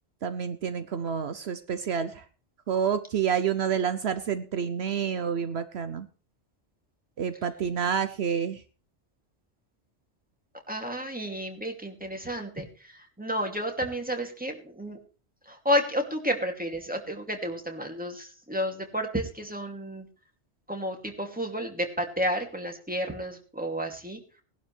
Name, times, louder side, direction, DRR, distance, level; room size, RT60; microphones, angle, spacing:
voice 1, 0.2-2.2 2.7-6.1 7.2-8.6, right 7 dB, 70° right, 11 dB, 1.0 m, -28 dB
voice 2, 10.7-15.0 15.5-20.1 20.7-24.2, equal, 5° right, 3 dB, 2.6 m, -31 dB
19.0 x 11.5 x 3.4 m, 0.36 s
omnidirectional pair, 1.2 m